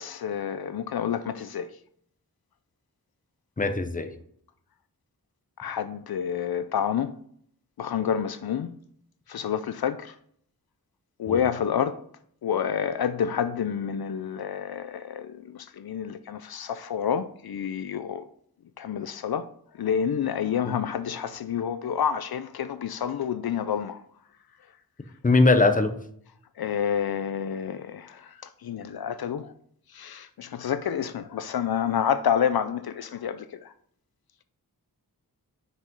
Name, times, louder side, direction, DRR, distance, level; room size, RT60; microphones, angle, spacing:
voice 1, 0.0-1.7 5.6-7.1 7.8-8.7 9.3-10.1 11.2-12.0 12.4-18.2 18.8-19.5 19.8-24.0 26.6-28.3 28.6-29.5 29.9-33.7, left 8 dB, 75° left, 0.5 m, -29 dB
voice 2, 3.6-4.1 11.3-11.4 20.6-20.7 25.2-25.9, left 3 dB, 20° left, 0.8 m, -20 dB
6.1 x 5.1 x 5.2 m
wide cardioid pair, 90°, 38 cm